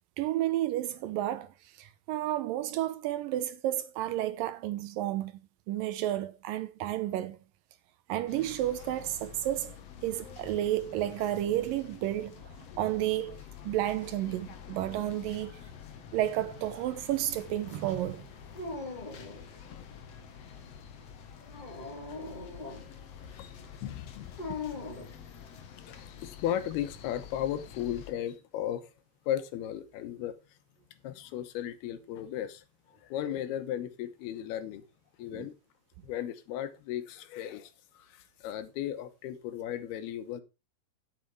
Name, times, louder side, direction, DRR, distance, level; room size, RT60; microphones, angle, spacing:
voice 1, 0.2-1.5 1.8-5.4 5.7-7.4 8.1-9.7 10.0-13.4 13.6-15.6 16.1-18.3 35.3-35.5, right 13 dB, 75° right, 2.2 m, -31 dB
sound 1, 8.3-28.1, left 8 dB, 55° left, 2.0 m, -48 dB
Dog, 18.5-19.5 21.4-22.9 24.4-25.1, left 3 dB, 15° left, 2.5 m, -40 dB
voice 2, 23.8-24.6 24.9-25.0 25.8-28.9 29.3-30.3 31.0-34.8 35.2-35.6 36.0-40.4, left 11 dB, 85° left, 3.1 m, -36 dB
9.5 x 8.9 x 4.5 m
omnidirectional pair, 4.4 m